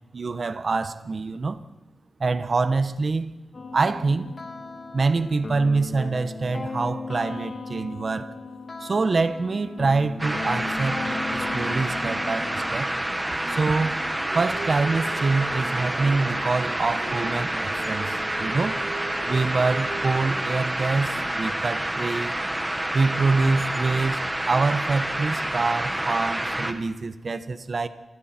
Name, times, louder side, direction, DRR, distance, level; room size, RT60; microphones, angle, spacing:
voice 1, 0.1-1.6 2.2-3.3 3.7-4.4 4.9-8.4 8.8-12.9 13.5-14.0 14.3-18.8 19.3-22.4 22.9-27.9, right 3 dB, 45° right, 1.3 m, -25 dB
sound 1, 3.5-12.7, left 3 dB, 45° left, 3.0 m, -36 dB
sound 2, 9.6-22.2, right 3 dB, 80° right, 7.1 m, -41 dB
sound 3, 10.2-26.7, right 1 dB, 10° right, 1.7 m, -28 dB
27.5 x 27.0 x 4.6 m
wide cardioid pair, 115°, 0 cm